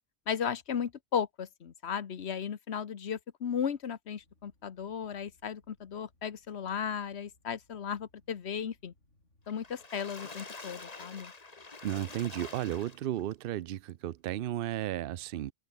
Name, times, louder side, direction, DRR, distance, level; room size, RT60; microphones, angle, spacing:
voice 1, 0.3-8.9 9.5-11.3, left 7 dB, 65° left, 1.2 m, -35 dB
sound 1, 4.2-9.9, left 2 dB, 80° left, 6.5 m, -69 dB
Water / Splash splatter, 9.5-13.3 13.9-14.0 14.3-14.4, left 3 dB, 35° left, 1.6 m, -46 dB
voice 2, 11.8-15.5, right 12 dB, 60° right, 0.7 m, -34 dB
open air
omnidirectional pair, 1.2 m